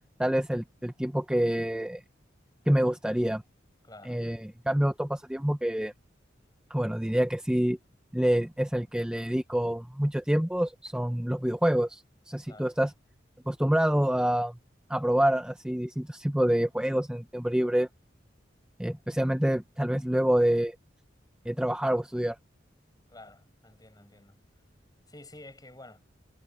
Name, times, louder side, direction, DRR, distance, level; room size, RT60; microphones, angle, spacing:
voice 1, 0.2-2.0 2.7-3.4 4.0-5.9 6.7-7.8 8.1-12.9 13.5-14.5 14.9-17.9 18.8-20.8 21.5-22.4, equal, 5° right, 0.5 m, -27 dB
voice 2, 3.8-4.2 12.4-12.7 23.1-24.4 25.1-26.0, left 2 dB, 20° left, 5.7 m, -50 dB
head